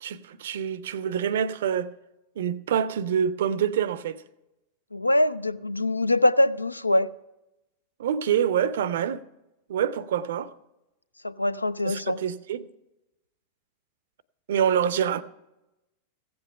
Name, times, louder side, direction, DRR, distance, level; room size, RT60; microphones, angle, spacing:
voice 1, 0.0-1.9 2.4-4.2 8.0-9.2 9.7-10.5 11.8-12.7 14.5-15.2, right 8 dB, 60° right, 0.5 m, -26 dB
voice 2, 4.9-7.1 11.2-12.2, left 1 dB, 85° left, 0.3 m, -23 dB
15.5 x 7.9 x 5.5 m
figure-of-eight pair, 90°, 0 cm